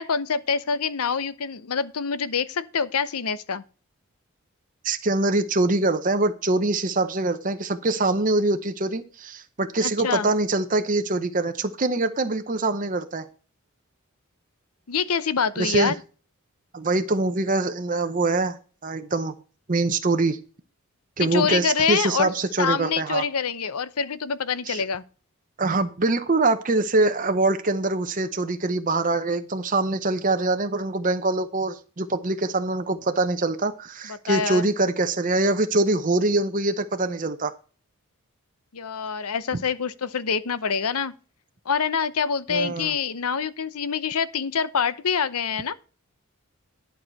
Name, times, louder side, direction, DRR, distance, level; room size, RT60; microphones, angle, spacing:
voice 1, 0.0-3.6 9.8-10.3 14.9-15.9 21.2-22.3 22.6-25.0 34.3-34.6 38.7-41.1 41.7-45.7, left 6 dB, 85° left, 0.7 m, -26 dB
voice 2, 4.8-13.3 15.6-15.9 16.7-18.6 18.8-19.4 19.7-20.4 21.2-23.2 24.7-24.8 25.6-37.5 39.5-39.6 42.5-42.9, right 2 dB, 35° right, 0.8 m, -24 dB
11.5 x 4.8 x 5.7 m
head